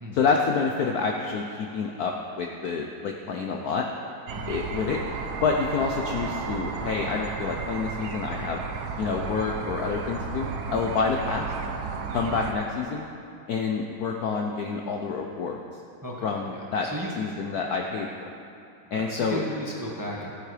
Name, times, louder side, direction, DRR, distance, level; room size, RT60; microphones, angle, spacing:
voice 1, 0.1-3.9 4.5-5.0 5.4-8.6 9.0-11.5 12.1-13.1 13.5-15.8 16.2-16.9 17.2-18.3 18.9-19.4, left 5 dB, 65° left, 1 dB, 1.0 m, -28 dB
sound 1, 4.3-12.5, right 5 dB, 60° right, 1.1 m, -33 dB
voice 2, 16.0-17.1 18.9-20.3, equal, 10° right, -3 dB, 1.0 m, -35 dB
14.5 x 8.5 x 5.0 m, 2.6 s
omnidirectional pair, 2.2 m